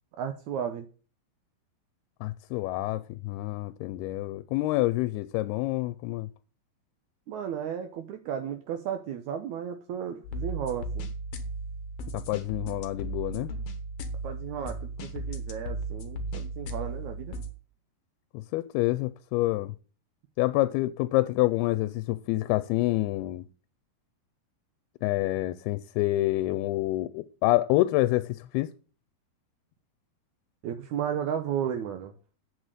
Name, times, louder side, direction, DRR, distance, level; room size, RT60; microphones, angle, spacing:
voice 1, 0.2-0.9 7.3-11.1 14.2-17.4 30.6-32.2, right 8 dB, 75° right, 1.8 m, -34 dB
voice 2, 2.2-6.3 12.1-13.5 18.3-19.7 20.4-23.5 25.0-28.7, left 18 dB, 90° left, 2.6 m, -27 dB
sound 1, 10.2-17.5, right 2 dB, 60° left, 1.6 m, -36 dB
8.6 x 6.3 x 6.5 m
omnidirectional pair, 4.4 m